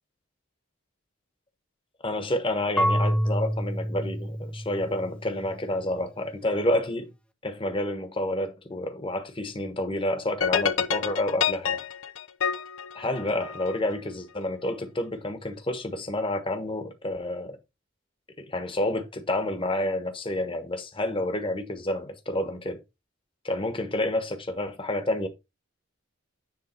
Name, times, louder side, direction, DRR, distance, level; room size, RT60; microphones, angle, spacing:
voice 1, 2.0-7.1 7.4-11.8 12.9-17.6 18.4-22.8 23.4-25.3, left 1 dB, 25° left, 1.3 m, -29 dB
Marimba xylophone / Wood, 2.8-5.6, equal, 5° left, 0.6 m, -28 dB
sound 1, 10.4-13.8, left 8 dB, 80° left, 0.7 m, -28 dB
9.7 x 3.4 x 4.5 m
head